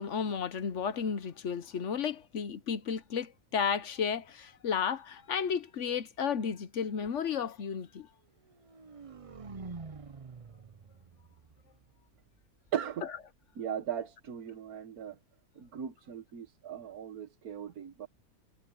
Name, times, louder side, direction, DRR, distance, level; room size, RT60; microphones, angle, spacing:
voice 1, 0.0-8.1, left 7 dB, 60° left, 1.1 m, -33 dB
sound 1, 8.4-12.5, right 4 dB, 35° right, 0.6 m, -47 dB
voice 2, 12.7-13.1 13.6-15.2 15.6-18.1, right 9 dB, 85° right, 1.8 m, -38 dB
omnidirectional pair, 1.5 m